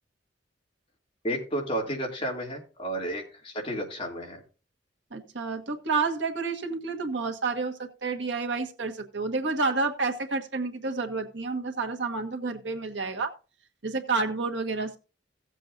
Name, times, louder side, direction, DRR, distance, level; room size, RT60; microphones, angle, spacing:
voice 1, 1.2-4.4, right 1 dB, 30° left, -1 dB, 2.8 m, -32 dB
voice 2, 5.1-13.3 13.8-15.0, right 4 dB, 85° right, 3 dB, 1.6 m, -30 dB
17.0 x 7.5 x 2.7 m, 0.33 s
head